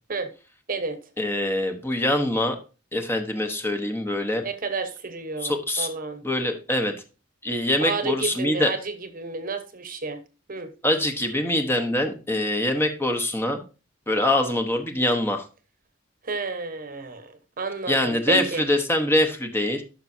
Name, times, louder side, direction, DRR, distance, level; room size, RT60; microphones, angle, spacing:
voice 1, 1.2-2.6 2.9-4.4 5.4-5.9 6.2-6.9 7.4-8.7 10.8-13.6 14.1-15.4 17.9-19.8, left 1 dB, 10° left, 1.0 m, -24 dB
voice 2, 4.4-6.2 7.8-10.2 10.5-10.7 16.2-18.6, right 3 dB, 45° right, 1.1 m, -31 dB
11.5 x 6.0 x 2.7 m
head